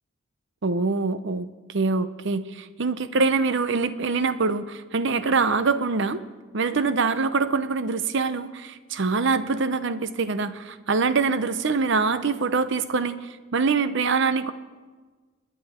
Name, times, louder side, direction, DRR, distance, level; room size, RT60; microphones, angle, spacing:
voice 1, 0.6-6.2 6.5-14.5, right 4 dB, 60° right, 13 dB, 0.7 m, -24 dB
27.5 x 10.0 x 4.3 m, 1.4 s
head